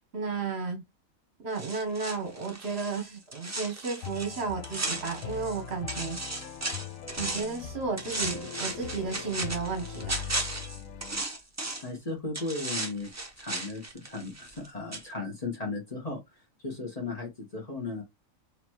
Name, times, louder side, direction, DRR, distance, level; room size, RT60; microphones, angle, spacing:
voice 1, 0.1-0.8 1.4-6.2 7.2-10.2, right 4 dB, 55° right, 1.2 m, -33 dB
sound 1, 1.6-5.6 5.9-7.6 8.0-12.0 12.3-14.7 14.9-15.0, right 2 dB, 15° right, 0.6 m, -36 dB
sound 2, 4.0-11.2, left 7 dB, 75° left, 1.0 m, -41 dB
voice 2, 11.8-13.1 13.4-16.2 16.6-18.0, left 3 dB, 30° left, 1.2 m, -36 dB
4.0 x 3.1 x 3.1 m
omnidirectional pair, 1.4 m